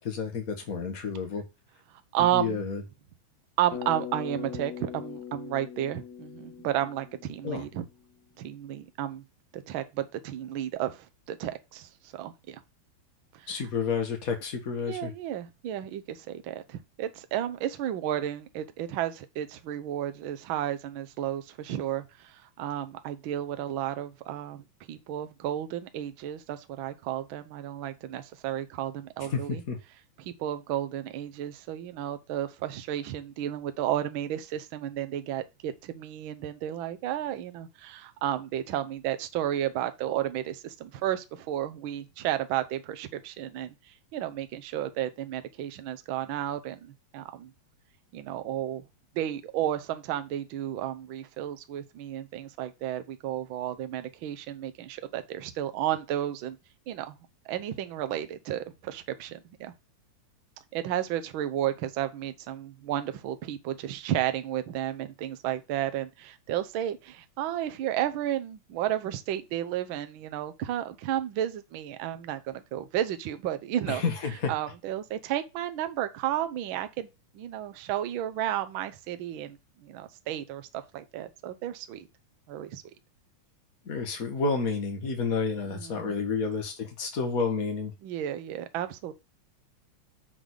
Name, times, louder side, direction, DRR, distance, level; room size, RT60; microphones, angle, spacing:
voice 1, 0.0-1.4 2.2-2.8 7.4-7.6 13.5-15.1 29.2-29.4 29.7-29.8 73.9-74.5 83.8-87.9, left 5 dB, 40° left, 1.5 m, -30 dB
voice 2, 2.1-2.6 3.6-7.8 8.4-9.2 9.5-12.6 13.3-13.6 14.9-29.6 30.2-43.7 44.1-47.5 48.1-48.8 49.1-56.6 56.9-57.2 57.5-59.7 60.7-74.0 74.5-77.1 77.3-82.1 82.5-82.8 85.7-86.2 88.0-89.1, right 12 dB, 80° right, 1.1 m, -32 dB
Bass guitar, 3.7-7.8, left 9 dB, 70° left, 2.3 m, -41 dB
7.0 x 3.9 x 6.3 m
omnidirectional pair, 3.4 m